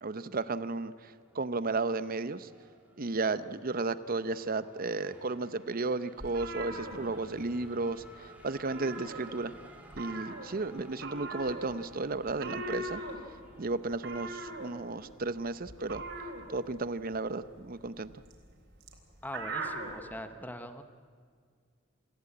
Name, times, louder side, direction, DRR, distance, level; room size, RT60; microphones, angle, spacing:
voice 1, 0.0-2.5 3.0-9.5 10.0-13.0 13.6-16.0 16.5-18.1, right 3 dB, 45° right, 14 dB, 0.8 m, -34 dB
Race car auto racing / Accelerating revving vroom, 1.1-18.1, right 1 dB, 10° right, 2.7 m, -56 dB
sound 1, 6.2-7.7 7.9-8.2 8.5-9.6 9.9-20.0, right 2 dB, 65° right, 3.9 m, -41 dB
voice 2, 19.2-20.8, left 1 dB, 10° left, 9 dB, 0.9 m, -42 dB
26.5 x 15.5 x 8.8 m, 2.1 s
head